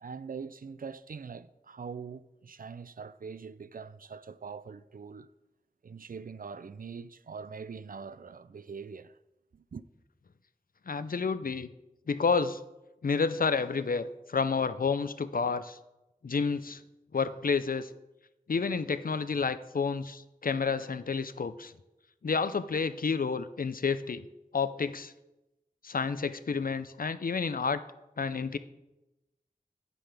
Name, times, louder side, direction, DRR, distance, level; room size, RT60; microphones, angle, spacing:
voice 1, 0.0-5.3 5.8-9.1 9.5-9.8, right 5 dB, 70° right, 0.4 m, -43 dB
voice 2, 10.9-11.7 12.1-12.6 13.0-15.8 16.2-16.8 17.1-17.9 18.5-21.7 22.2-24.2 24.5-25.1 25.8-27.8 28.2-28.6, left 5 dB, 70° left, 0.5 m, -30 dB
9.7 x 9.2 x 3.4 m
wide cardioid pair, 50°, 15 cm